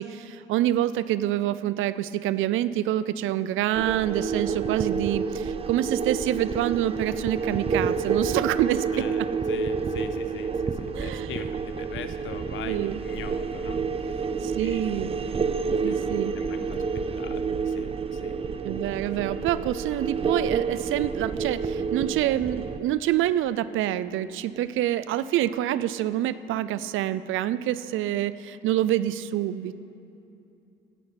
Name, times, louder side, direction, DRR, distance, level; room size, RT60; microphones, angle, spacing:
voice 1, 0.0-9.1 10.9-11.3 12.7-13.0 14.4-15.1 15.8-16.4 18.6-29.8, right 13 dB, 85° right, 15 dB, 0.5 m, -26 dB
sound 1, 3.8-22.8, right 5 dB, 30° right, 0.5 m, -29 dB
voice 2, 8.9-14.2 14.6-14.8 15.9-16.0 16.4-16.8 17.2-18.4, left 8 dB, 75° left, 11 dB, 0.7 m, -41 dB
16.0 x 5.7 x 8.0 m, 2.8 s
cardioid pair, 90°, 20 cm